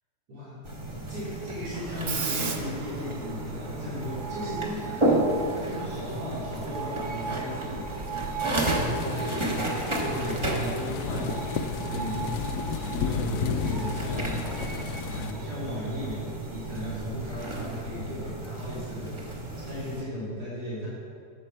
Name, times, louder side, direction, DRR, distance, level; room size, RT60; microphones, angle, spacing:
voice 1, 0.3-0.6 1.1-8.2 8.5-12.2 12.9-14.5 15.0-20.9, equal, 80° right, -9 dB, 3.4 m, -36 dB
sound 1, 0.6-20.0, right 1 dB, 20° right, 1.1 m, -33 dB
Screech, 1.7-18.3, right 5 dB, 55° right, 0.5 m, -39 dB
sound 2, 8.7-15.3, left 7 dB, 80° left, 1.1 m, -33 dB
12.0 x 8.1 x 4.4 m, 2.4 s
omnidirectional pair, 1.7 m